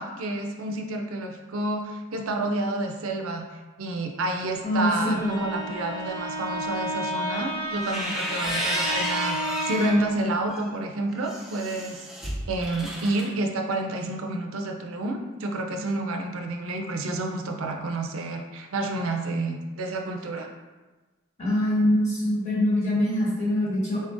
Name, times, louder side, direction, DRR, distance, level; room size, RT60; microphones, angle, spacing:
voice 1, 0.0-3.5 3.8-12.1 12.5-20.5, right 2 dB, 75° right, 3 dB, 0.5 m, -29 dB
voice 2, 4.6-5.3 21.4-24.0, left 1 dB, 35° left, -7 dB, 1.3 m, -24 dB
Bowed string instrument, 5.0-10.2, equal, 65° left, 1.1 m, -32 dB
sound 1, 7.7-10.0 10.5-13.3, right 1 dB, ahead, 0.5 m, -32 dB
3.8 x 3.6 x 2.5 m, 1.3 s
head